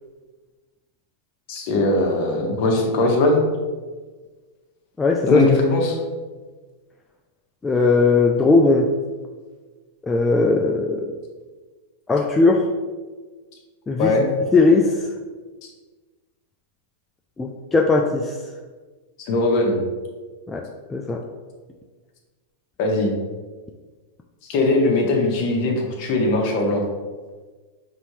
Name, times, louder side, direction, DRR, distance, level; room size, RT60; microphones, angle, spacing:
voice 1, 1.5-3.4 5.3-6.0 14.0-14.3 19.2-19.8 22.8-23.1 24.5-26.8, left 2 dB, 50° left, 0 dB, 1.0 m, -20 dB
voice 2, 5.0-5.4 7.6-8.9 10.0-11.0 12.1-12.6 13.9-14.1 14.5-15.0 17.4-18.4 20.5-20.6 20.9-21.2, left 3 dB, 10° left, 0 dB, 0.3 m, -18 dB
5.3 x 2.7 x 3.1 m, 1.4 s
supercardioid pair, 135°, 0 cm